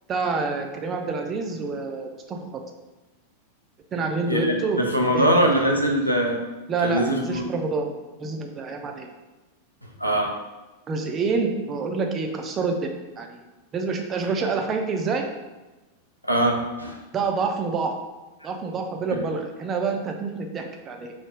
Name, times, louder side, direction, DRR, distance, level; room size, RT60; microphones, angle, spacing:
voice 1, 0.1-2.6 3.9-4.8 5.1-5.3 6.7-7.9 8.2-9.1 10.9-13.4 13.7-15.2 17.1-18.0 18.4-21.1, right 4 dB, 25° right, 4 dB, 0.4 m, -27 dB
voice 2, 4.3-6.4 6.8-7.4 10.0-10.3 16.2-17.0, right 1 dB, 90° left, 1 dB, 0.4 m, -22 dB
3.1 x 2.0 x 3.4 m, 1.1 s
figure-of-eight pair, 90°, 0 cm